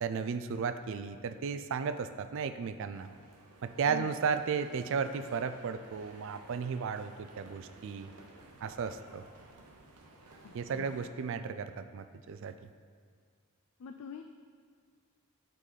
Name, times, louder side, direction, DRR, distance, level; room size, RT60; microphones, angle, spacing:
voice 1, 0.0-3.1 3.6-8.1 8.6-9.2 10.5-12.7, right 6 dB, 60° right, 11 dB, 0.3 m, -34 dB
sound 1, 2.9-11.1, right 2 dB, 85° right, 0.8 m, -55 dB
voice 2, 10.4-11.0 13.8-14.2, left 7 dB, 70° left, 5 dB, 0.3 m, -45 dB
9.1 x 3.8 x 4.0 m, 2.1 s
head